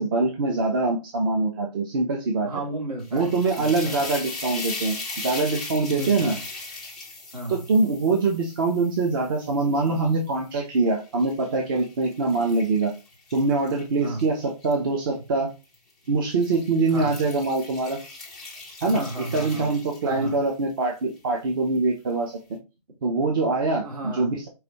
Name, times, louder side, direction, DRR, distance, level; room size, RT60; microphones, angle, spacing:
voice 1, 0.0-2.5 3.1-6.3 7.5-12.9 13.3-15.5 16.1-18.0 18.8-19.0 19.3-22.4 23.0-23.8 24.1-24.5, right 3 dB, 35° right, 0.7 m, -24 dB
voice 2, 2.4-4.0 5.9-6.4 7.3-7.6 14.0-14.2 16.9-17.1 18.8-19.7 20.0-20.4 23.8-24.3, right 1 dB, 65° right, 2.5 m, -33 dB
sound 1, 3.0-10.2 10.8-14.7 15.6-15.9 16.3-20.5, left 3 dB, ahead, 0.4 m, -39 dB
4.8 x 2.6 x 2.8 m
hypercardioid pair, 150°, 21 cm